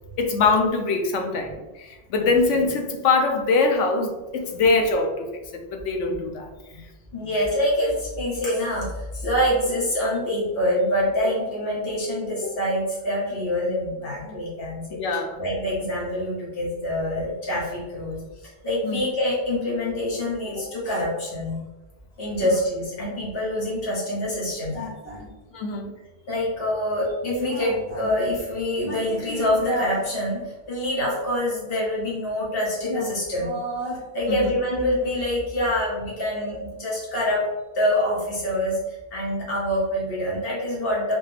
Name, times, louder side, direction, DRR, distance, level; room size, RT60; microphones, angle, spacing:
voice 1, 0.2-6.5 14.9-15.4 18.8-19.0 25.5-25.9 34.3-34.6, left 3 dB, 90° left, 3 dB, 1.0 m, -23 dB
voice 2, 7.1-15.0 15.4-18.2 18.6-21.6 22.2-25.3 26.3-37.5 37.7-41.1, left 1 dB, 55° left, -6 dB, 1.5 m, -25 dB
4.2 x 2.4 x 3.3 m, 1.1 s
omnidirectional pair, 1.2 m